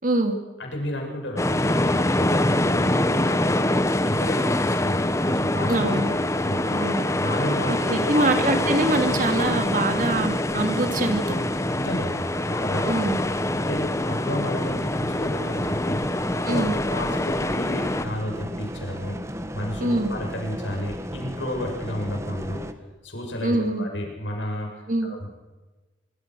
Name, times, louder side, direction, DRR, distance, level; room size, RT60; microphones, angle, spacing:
voice 1, 0.0-0.4 5.7-6.1 6.7-7.0 7.7-11.4 12.8-13.2 16.5-16.8 19.8-20.1 23.4-23.9 24.9-25.1, right 2 dB, 45° right, 6 dB, 2.8 m, -24 dB
voice 2, 0.6-3.7 4.0-6.0 6.4-6.8 7.2-8.3 11.7-13.0 13.6-16.1 16.4-19.2 19.5-22.7 23.0-25.3, left 1 dB, 80° left, 1 dB, 7.2 m, -32 dB
sound 1, 1.4-18.1, left 1 dB, 15° left, 1.0 m, -24 dB
sound 2, 7.8-22.7, equal, 15° right, 1.6 m, -37 dB
24.5 x 24.0 x 6.4 m, 1.2 s
head